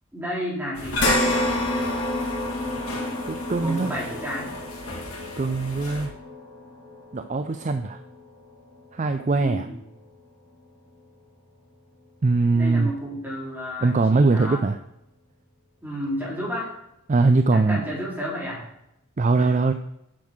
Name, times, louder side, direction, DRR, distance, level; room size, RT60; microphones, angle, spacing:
voice 1, 0.1-1.0 3.6-4.5 9.3-9.8 12.5-14.6 15.8-16.7 17.5-18.6, equal, 10° right, -7 dB, 4.2 m, -31 dB
sound 1, 0.7-6.1, left 1 dB, 80° left, 2.9 m, -36 dB
sound 2, 1.0-9.6 10.0-10.1 11.6-11.7, left 1 dB, 50° left, 3.3 m, -29 dB
voice 2, 3.3-3.9 5.4-6.1 7.1-8.0 8.9-9.6 12.2-12.9 13.8-14.8 17.1-17.8 19.2-19.7, right 3 dB, 35° right, 9 dB, 0.4 m, -21 dB
8.6 x 6.3 x 6.2 m, 0.83 s
head